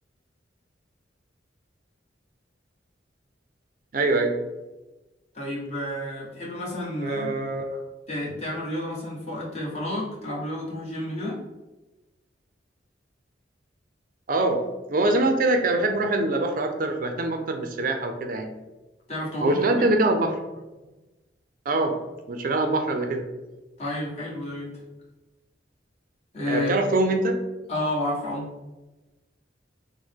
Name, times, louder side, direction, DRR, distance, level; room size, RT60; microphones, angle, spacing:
voice 1, 3.9-4.3 7.0-7.8 14.3-14.6 14.9-18.5 19.4-20.3 21.7-21.9 22.3-23.2 26.5-27.4, right 2 dB, 50° right, 5 dB, 0.5 m, -23 dB
voice 2, 5.3-7.6 8.1-11.4 19.1-19.9 23.8-24.8 26.3-26.8 27.7-28.5, left 1 dB, 35° left, -5 dB, 1.3 m, -31 dB
6.2 x 2.1 x 3.5 m, 1.1 s
head